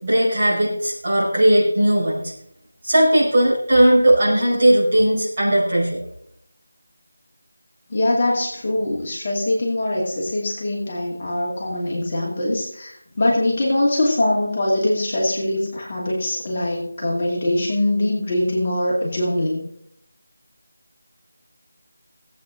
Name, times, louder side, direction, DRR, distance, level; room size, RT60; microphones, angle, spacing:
voice 1, 0.0-2.3 2.8-6.0, right 1 dB, 30° right, -7 dB, 5.1 m, -17 dB
voice 2, 7.9-19.6, left 1 dB, 30° left, -4 dB, 2.5 m, -22 dB
17.5 x 8.5 x 3.8 m, 0.70 s
figure-of-eight pair, 175°, 0 cm